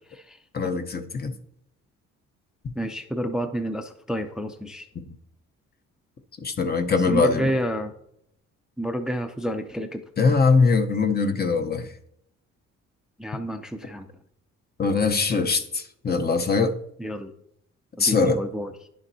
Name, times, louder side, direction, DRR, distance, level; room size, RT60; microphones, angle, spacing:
voice 1, 0.5-1.3 5.0-5.1 6.4-7.5 10.2-11.9 14.8-16.7 18.0-18.4, left 4 dB, 30° left, 7 dB, 0.8 m, -22 dB
voice 2, 2.8-4.9 6.9-7.9 8.8-10.0 13.2-14.1 17.0-17.3 18.0-18.7, equal, ahead, 7 dB, 0.5 m, -29 dB
10.0 x 7.1 x 2.7 m, 0.74 s
cardioid pair, 90°, 30 cm